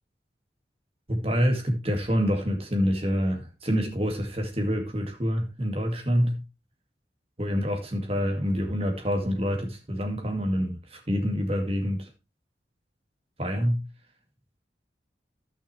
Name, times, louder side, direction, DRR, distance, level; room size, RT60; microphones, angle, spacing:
voice 1, 1.1-6.4 7.4-12.1 13.4-13.9, equal, 35° right, 2.2 m, -27 dB
15.0 x 6.2 x 3.3 m
head